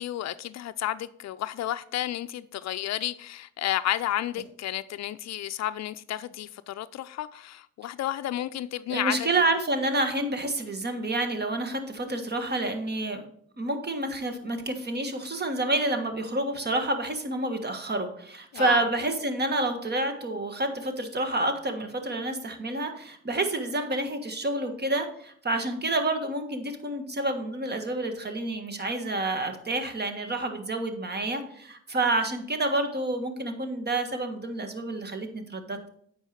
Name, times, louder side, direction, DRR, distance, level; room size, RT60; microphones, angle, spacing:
voice 1, 0.0-9.3 18.5-18.9, left 13 dB, 60° left, 0.5 m, -32 dB
voice 2, 8.9-13.2 13.6-35.9, right 2 dB, 35° right, 1.5 m, -29 dB
9.1 x 4.8 x 5.1 m
cardioid pair, 90°, 30 cm